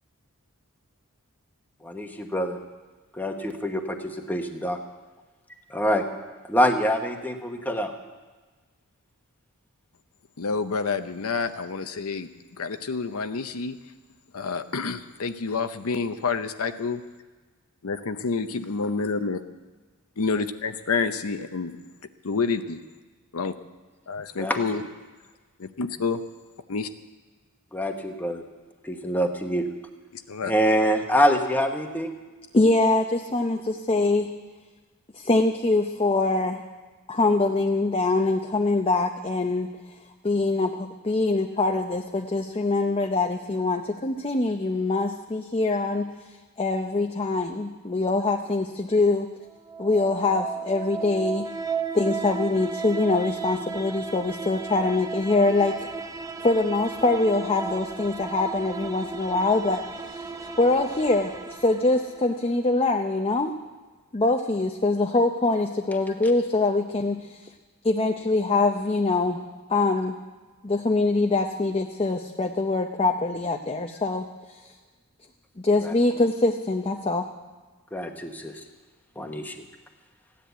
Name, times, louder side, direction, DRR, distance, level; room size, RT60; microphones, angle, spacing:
voice 1, 1.8-2.6 3.2-4.8 5.7-6.1 6.5-7.9 24.4-24.6 27.7-28.4 28.8-29.6 30.4-32.1 75.8-75.9 77.9-78.5 79.2-79.6, equal, 10° left, 4 dB, 1.2 m, -25 dB
voice 2, 10.4-12.3 12.6-13.8 14.3-17.0 17.8-19.4 20.2-21.7 22.2-22.8 23.3-23.5 24.1-24.8 25.8-26.2 26.7-26.9 30.1-30.5, left 4 dB, 70° left, 9 dB, 0.7 m, -28 dB
voice 3, 32.5-34.3 35.1-36.6 37.1-39.7 40.2-46.1 46.6-49.3 49.8-51.5 51.9-55.8 56.4-60.3 60.6-63.5 64.1-67.5 67.8-69.4 69.7-70.2 70.6-74.7 75.6-77.3, left 2 dB, 25° left, 4 dB, 0.6 m, -24 dB
sound 1, 49.5-62.5, right 5 dB, 15° right, 0.7 m, -35 dB
15.5 x 10.0 x 8.1 m, 1.3 s
head